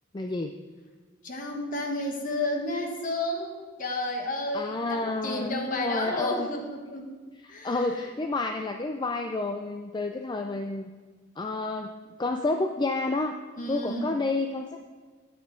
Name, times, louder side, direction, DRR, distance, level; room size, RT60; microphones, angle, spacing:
voice 1, 0.1-0.5 4.5-6.5 7.4-10.9 11.4-11.9 12.2-13.4 13.7-14.8, left 2 dB, 20° left, 5 dB, 0.4 m, -30 dB
voice 2, 1.2-7.1 7.5-8.0 13.6-14.1, left 1 dB, 40° left, 2 dB, 1.4 m, -31 dB
12.0 x 9.4 x 3.7 m, 1.4 s
head